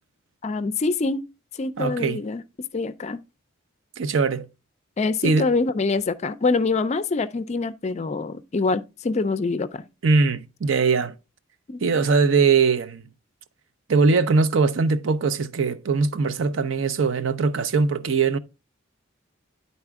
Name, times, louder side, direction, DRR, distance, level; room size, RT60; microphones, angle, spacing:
voice 1, 0.4-1.2 1.6-2.4 2.7-3.2 5.0-9.9 11.7-11.9, left 3 dB, 35° left, 0.4 m, -25 dB
voice 2, 1.8-2.2 4.0-4.5 5.2-5.5 10.0-11.1 11.8-13.0 13.9-18.4, right 4 dB, 70° right, 0.5 m, -21 dB
9.8 x 4.1 x 3.5 m
head